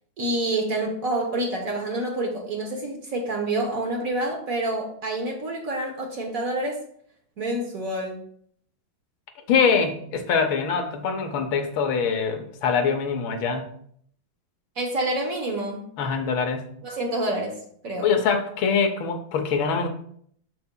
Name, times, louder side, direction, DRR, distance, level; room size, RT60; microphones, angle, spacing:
voice 1, 0.2-6.8 7.4-8.2 14.8-15.9 16.8-17.6 17.8-18.1, right 1 dB, 50° right, 1 dB, 1.2 m, -27 dB
voice 2, 9.5-13.7 16.0-16.7 18.0-19.9, left 5 dB, 80° left, 6 dB, 1.6 m, -23 dB
6.8 x 6.7 x 2.2 m, 0.64 s
omnidirectional pair, 2.2 m